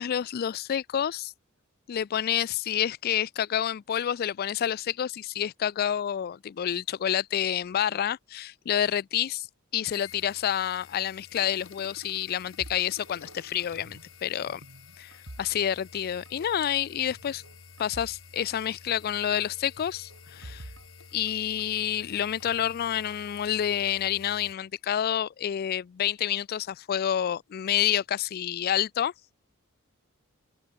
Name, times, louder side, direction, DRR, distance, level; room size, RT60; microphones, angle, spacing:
voice 1, 0.0-1.3 1.9-9.5 9.7-14.6 15.0-15.1 15.4-17.4 17.8-20.7 21.1-29.1, left 10 dB, 45° left, 0.3 m, -28 dB
sound 1, 9.9-24.5, left 5 dB, 70° left, 2.9 m, -50 dB
sound 2, 12.6-14.1 14.4-16.0 16.3-16.5 17.1-18.2 18.5-18.6 19.8-21.8 22.4-23.3, right 1 dB, 70° right, 2.5 m, -48 dB
open air
head